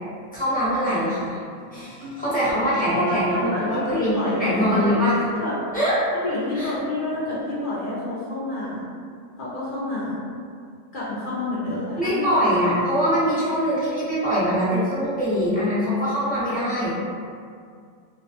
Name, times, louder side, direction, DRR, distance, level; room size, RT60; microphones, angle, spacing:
voice 1, 0.3-1.4 1.7-5.2 5.7-6.0 6.5-6.7 12.0-17.0, equal, 10° left, -12 dB, 0.5 m, -23 dB
sound 1, 1.5-2.7 3.3-5.9 6.7-7.4, equal, 65° right, 0.6 m, -39 dB
voice 2, 2.9-4.8 5.4-5.5 6.1-8.9 9.4-10.2 10.9-12.7, left 1 dB, 60° left, -8 dB, 0.5 m, -28 dB
2.3 x 2.3 x 2.5 m, 2.2 s
omnidirectional pair, 1.4 m